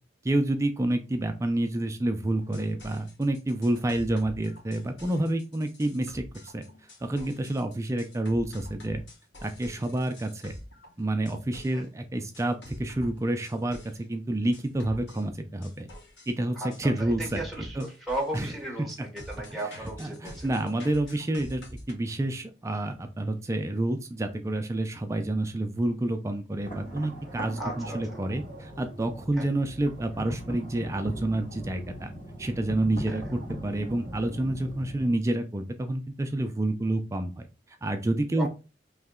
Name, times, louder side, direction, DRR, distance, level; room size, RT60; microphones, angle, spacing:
voice 1, 0.2-6.2 6.5-6.6 7.0-9.0 9.4-10.5 11.0-13.8 14.1-15.9 16.3-17.4 17.8-17.9 18.3-18.5 20.0-21.6 21.9-32.1 32.4-37.3 37.8-38.5, right 1 dB, 15° right, 7 dB, 0.3 m, -28 dB
sound 1, 2.4-11.9 12.3-14.0 14.5-16.3 16.7-21.9, left 1 dB, 80° left, 1.0 m, -46 dB
voice 2, 16.5-20.6 27.6-28.0 29.4-29.5 33.1-33.3 38.4-38.5, right 1 dB, ahead, -1 dB, 0.8 m, -36 dB
sound 2, 26.6-35.1, equal, 45° left, 1.6 m, -40 dB
3.1 x 2.8 x 3.6 m, 0.30 s
head